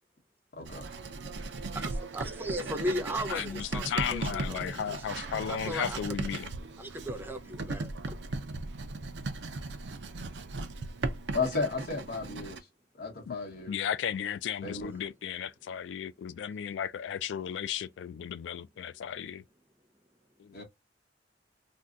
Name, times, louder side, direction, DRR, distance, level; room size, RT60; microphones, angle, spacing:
voice 1, 0.5-0.9 11.3-12.6 13.0-13.8 14.6-14.9 20.5-20.6, left 4 dB, 55° left, 1.0 m, -33 dB
Writing, 0.7-12.6, right 3 dB, 70° right, 0.5 m, -37 dB
voice 2, 1.7-5.0 5.4-6.0 6.8-8.2, equal, 10° right, 0.5 m, -37 dB
voice 3, 3.3-6.5 13.3-13.4 13.7-19.4 20.4-20.6, left 8 dB, 75° left, 0.3 m, -35 dB
2.6 x 2.2 x 3.6 m
head